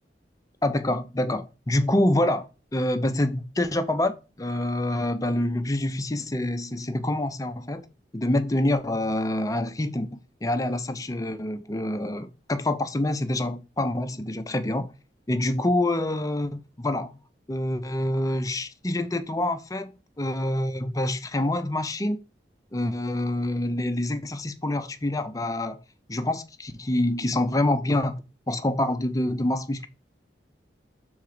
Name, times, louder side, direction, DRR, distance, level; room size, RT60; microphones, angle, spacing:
voice 1, 0.6-7.8 8.1-14.9 15.3-17.1 17.5-22.2 22.7-25.8 26.1-29.9, left 1 dB, 20° left, 0.5 m, -26 dB
6.3 x 3.9 x 4.8 m
head